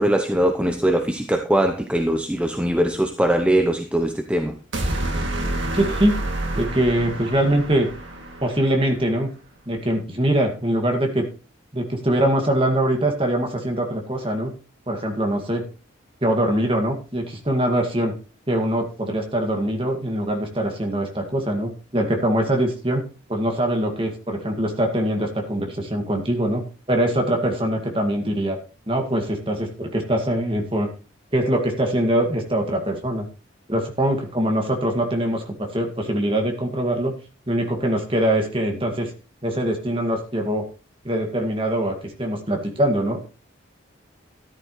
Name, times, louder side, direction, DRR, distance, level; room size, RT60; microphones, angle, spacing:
voice 1, 0.0-4.5, right 1 dB, 5° right, 5 dB, 0.7 m, -21 dB
sound 1, 4.7-9.0, right 1 dB, 70° right, 2.5 m, -28 dB
voice 2, 5.7-6.2 6.6-7.9 8.4-9.3 9.7-11.3 11.7-14.5 14.9-15.6 16.2-18.1 18.5-23.0 23.3-28.6 28.9-30.9 31.3-33.3 33.7-37.1 37.5-39.1 39.4-40.7 41.0-43.2, right 1 dB, 25° right, 2 dB, 2.1 m, -23 dB
13.5 x 11.0 x 3.2 m, 0.35 s
head